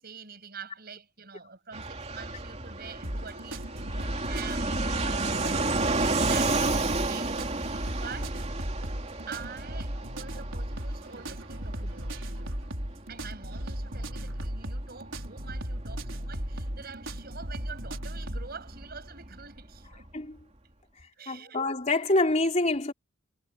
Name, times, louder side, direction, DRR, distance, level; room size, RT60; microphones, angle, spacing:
voice 1, 0.0-7.4 7.6-8.4 9.3-12.2 13.1-20.1 21.2-21.6, right 5 dB, 45° right, 7.1 m, -45 dB
Fixed-wing aircraft airplane, 1.7-20.1, right 3 dB, 30° right, 3.2 m, -33 dB
sound 1, 3.0-18.5, right 1 dB, 65° right, 5.1 m, -36 dB
voice 2, 21.3-22.9, left 2 dB, 35° left, 3.4 m, -26 dB
head